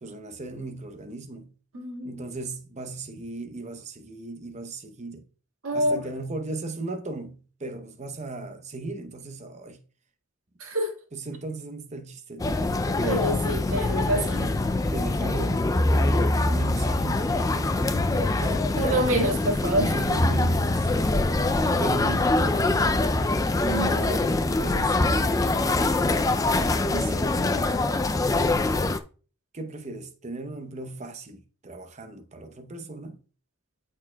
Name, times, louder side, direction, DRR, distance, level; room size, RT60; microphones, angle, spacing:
voice 1, 0.0-1.5 2.0-5.3 5.7-9.8 11.1-13.0 14.1-18.0 19.9-21.3 21.7-23.2 23.9-26.2 26.9-27.4 29.5-33.2, right 2 dB, 30° right, 0.7 m, -37 dB
voice 2, 1.7-2.2 5.6-6.0 10.6-11.0 13.0-14.4 18.2-19.9 23.6-24.1, right 1 dB, 70° right, 1.8 m, -27 dB
sound 1, 12.4-29.0, left 2 dB, 15° left, 0.3 m, -24 dB
13.0 x 4.5 x 2.2 m
head